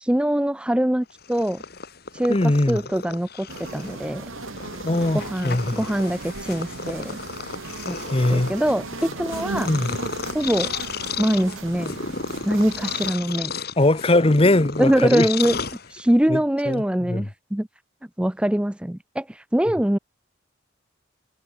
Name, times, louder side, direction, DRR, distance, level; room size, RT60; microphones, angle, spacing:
voice 1, 0.0-1.6 2.1-4.3 5.1-7.2 7.9-8.0 8.3-9.7 10.3-10.7 11.2-11.9 12.4-13.5 14.8-15.6 15.9-17.7 18.2-20.0, right 1 dB, 5° right, 0.4 m, -23 dB
Purr, 1.1-16.3, left 5 dB, 50° left, 2.5 m, -34 dB
voice 2, 2.3-2.8 4.8-5.8 8.1-8.5 9.7-10.0 13.8-15.3 16.3-16.4 16.7-17.3, left 1 dB, 25° left, 0.9 m, -20 dB
sound 1, 3.5-13.1, right 3 dB, 75° right, 1.6 m, -36 dB
head